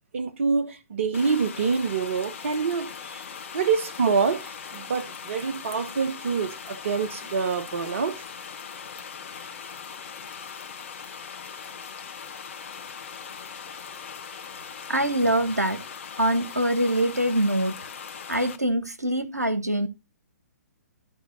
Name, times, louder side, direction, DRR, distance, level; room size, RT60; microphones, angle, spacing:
voice 1, 0.1-3.2 3.5-8.2, right 5 dB, 55° right, 1.0 m, -26 dB
sound 1, 1.1-18.6, left 7 dB, 50° left, 1.2 m, -40 dB
voice 2, 14.9-15.8 16.2-17.7 18.3-19.9, right 1 dB, 85° right, 1.4 m, -24 dB
14.0 x 4.7 x 4.0 m
figure-of-eight pair, 125°, 9 cm